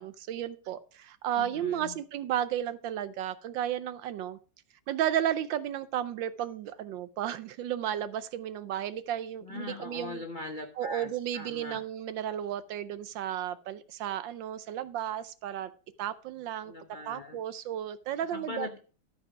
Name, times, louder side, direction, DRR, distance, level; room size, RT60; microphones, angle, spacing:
voice 1, 0.0-4.4 4.9-10.2 10.8-15.7 16.0-16.7 17.1-18.7, right 10 dB, 70° right, 14 dB, 1.2 m, -33 dB
voice 2, 1.4-2.0 9.4-11.8 16.6-17.4 18.2-18.8, left 2 dB, 65° left, 6 dB, 0.4 m, -41 dB
12.5 x 5.4 x 5.0 m, 0.38 s
omnidirectional pair, 2.3 m